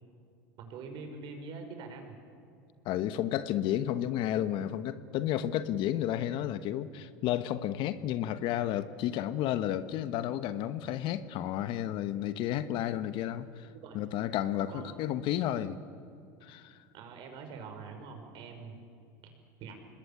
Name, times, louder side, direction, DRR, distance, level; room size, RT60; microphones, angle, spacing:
voice 1, 0.6-2.1 4.6-4.8 13.8-14.0 14.7-15.0 16.9-18.8 19.2-19.3 19.6-19.8, right 4 dB, 55° right, 5 dB, 5.5 m, -44 dB
voice 2, 2.8-13.7 13.9-15.8 16.4-16.8, left 11 dB, 55° left, 13 dB, 1.2 m, -32 dB
25.5 x 20.5 x 8.8 m, 2.4 s
supercardioid pair, 105°, 10 cm